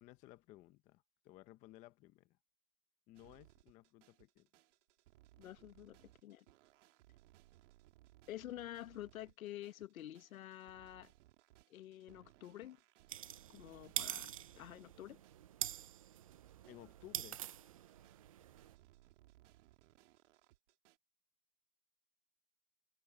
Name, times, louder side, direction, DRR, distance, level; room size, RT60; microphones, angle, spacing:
voice 1, 0.0-2.4 3.1-4.5 16.7-17.4, left 17 dB, 15° left, 0.7 m, -58 dB
sound 1, 3.1-21.0, right 16 dB, 45° right, 2.8 m, -66 dB
voice 2, 5.4-6.4 8.3-11.1 11.7-12.8 13.5-15.2, left 13 dB, 55° left, 1.6 m, -49 dB
sound 2, 13.1-18.7, right 11 dB, 25° right, 0.4 m, -46 dB
hypercardioid pair, 140°, 48 cm